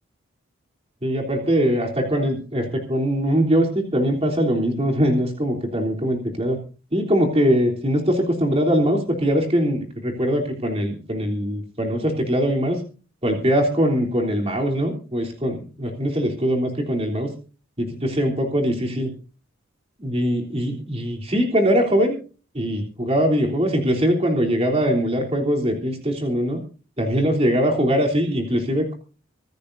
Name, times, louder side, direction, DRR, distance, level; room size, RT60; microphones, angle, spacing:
voice 1, 1.0-6.6 6.9-12.8 13.2-17.3 17.8-19.1 20.0-22.2 22.5-26.6 27.0-28.9, equal, 30° right, 1 dB, 3.4 m, -22 dB
25.5 x 13.5 x 2.7 m, 0.36 s
head